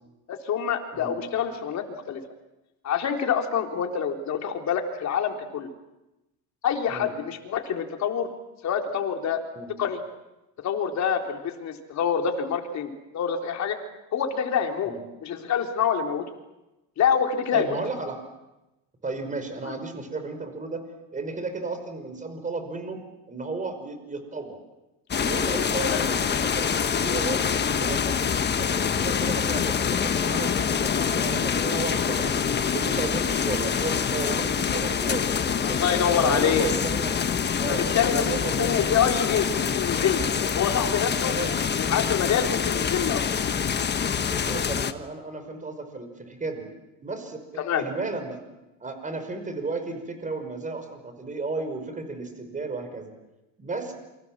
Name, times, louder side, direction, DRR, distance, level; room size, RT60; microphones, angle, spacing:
voice 1, 0.3-2.2 2.8-5.7 6.6-8.3 8.6-9.4 9.8-10.0 10.6-13.8 14.1-15.0 15.2-16.2 17.0-17.8 19.6-19.7 25.9-26.1 35.6-36.7 37.7-41.3 41.8-43.2 47.6-47.8, left 7 dB, 45° left, 4 dB, 3.8 m, -26 dB
voice 2, 17.5-18.2 19.0-20.8 21.1-24.6 25.2-27.5 27.8-28.3 28.6-32.4 32.7-35.9 36.2-37.1 37.6-38.7 41.3-41.6 42.2-42.5 44.2-46.7 47.0-48.4 48.8-53.1 53.6-53.9, right 3 dB, 20° right, 8 dB, 5.5 m, -34 dB
sound 1, 25.1-44.9, left 7 dB, 25° left, 1.3 m, -25 dB
28.5 x 25.0 x 7.6 m, 0.97 s
cardioid pair, 120°, 38 cm